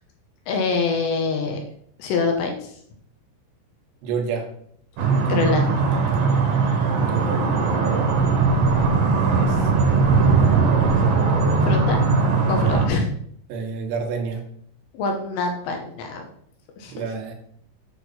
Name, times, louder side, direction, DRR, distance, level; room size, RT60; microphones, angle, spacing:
voice 1, 0.5-1.6 2.0-2.7 5.2-5.7 11.6-12.0 12.5-13.1 14.9-16.2 16.8-17.0, left 4 dB, 75° left, 3 dB, 2.9 m, -25 dB
voice 2, 4.0-4.5 6.9-7.4 9.1-9.6 13.5-14.4 16.9-17.3, right 5 dB, 90° right, 3 dB, 4.2 m, -29 dB
sound 1, 5.0-12.9, right 4 dB, 65° right, 2.4 m, -19 dB
9.3 x 6.4 x 4.3 m, 0.65 s
omnidirectional pair, 5.9 m